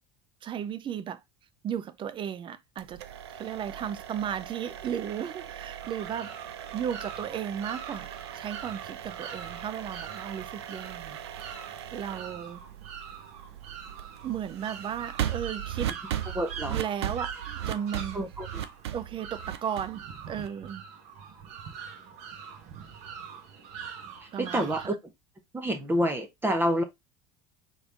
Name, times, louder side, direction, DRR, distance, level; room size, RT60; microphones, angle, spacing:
voice 1, 0.4-1.2 1.6-3.0 3.3-6.3 6.7-11.6 11.9-12.6 14.2-15.9 16.7-18.2 18.9-20.8 24.3-24.9, right 9 dB, 40° right, 0.6 m, -35 dB
sound 1, 2.8-20.7, right 11 dB, 85° right, 0.5 m, -38 dB
sound 2, 5.8-24.9, right 7 dB, 60° right, 1.6 m, -44 dB
voice 2, 16.3-16.8 18.1-18.6 24.4-24.9 25.5-26.8, equal, 15° right, 0.9 m, -28 dB
3.9 x 3.5 x 3.4 m
hypercardioid pair, 80°, 14 cm